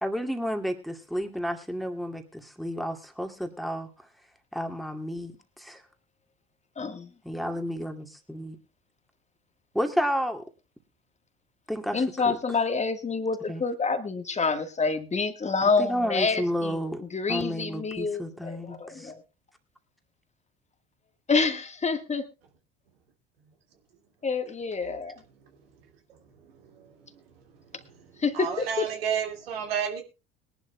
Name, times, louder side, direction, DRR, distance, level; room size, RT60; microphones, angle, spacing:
voice 1, 0.0-3.9 4.5-5.8 7.2-8.6 9.7-10.4 11.7-12.4 13.5-13.6 15.6-17.0 17.3-19.1, equal, ahead, 2.3 m, -31 dB
voice 2, 6.8-7.1 11.9-16.8 17.1-19.2 21.3-22.3 24.2-25.1 28.2-28.9, left 4 dB, 25° left, 1.5 m, -27 dB
voice 3, 28.3-30.0, right 8 dB, 75° right, 2.2 m, -31 dB
22.0 x 11.5 x 2.2 m
figure-of-eight pair, 65°, 30 cm